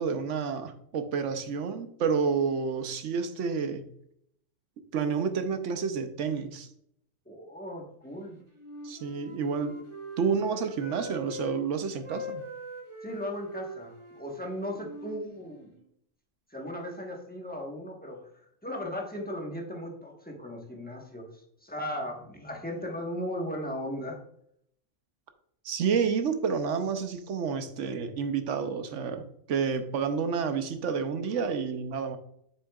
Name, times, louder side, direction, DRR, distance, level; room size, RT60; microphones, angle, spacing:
voice 1, 0.0-3.8 4.9-6.7 8.8-9.7 10.2-12.4 25.6-32.2, right 6 dB, 75° right, 8 dB, 1.1 m, -29 dB
voice 2, 7.3-8.4 13.0-15.7 16.5-18.2 18.6-24.2, left 1 dB, 10° left, 0 dB, 1.2 m, -37 dB
Wind instrument woodwind instrument, 8.6-11.5 12.0-15.8, right 1 dB, 25° right, 1.2 m, -42 dB
7.5 x 6.2 x 2.4 m, 0.70 s
omnidirectional pair, 1.3 m